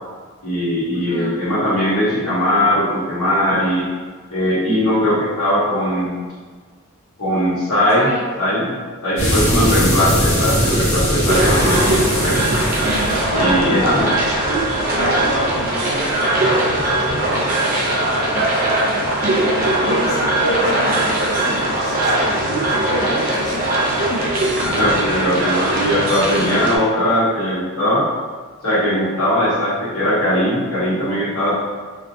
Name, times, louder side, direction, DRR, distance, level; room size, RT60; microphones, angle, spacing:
voice 1, 0.4-3.9 4.3-6.3 7.2-8.1 8.4-8.7 9.0-12.5 13.4-14.1 22.8-23.1 24.6-28.0 28.6-31.5, equal, 90° left, -8 dB, 1.0 m, -19 dB
voice 2, 0.9-1.3 7.9-8.2 13.3-14.1 14.7-22.4 22.7-23.6 23.9-24.2, left 1 dB, 45° left, -6 dB, 0.4 m, -29 dB
sound 1, 9.2-15.6, equal, 65° left, 0.9 m, -21 dB
sound 2, 11.3-26.8, right 1 dB, 40° right, 0.5 m, -20 dB
2.6 x 2.2 x 2.6 m, 1.5 s
head